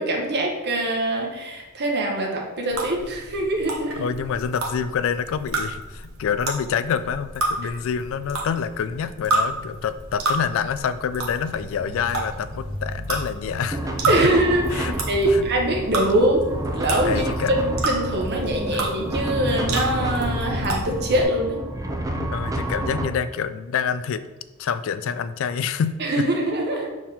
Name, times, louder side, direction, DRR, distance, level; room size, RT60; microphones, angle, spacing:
voice 1, 0.0-4.1 14.1-16.5 16.7-21.6 26.0-26.9, right 1 dB, 50° right, 0 dB, 1.2 m, -23 dB
sound 1, 2.7-21.2, right 2 dB, 75° right, 1.2 m, -31 dB
voice 2, 4.0-13.9 14.2-14.3 14.7-15.0 15.3-15.5 17.0-17.5 18.7-18.8 22.0-24.2 24.6-26.0, left 7 dB, 65° left, 13 dB, 0.3 m, -27 dB
sound 2, 13.7-23.1, right 1 dB, 15° right, 0.6 m, -29 dB
4.7 x 3.6 x 5.5 m, 1.1 s
head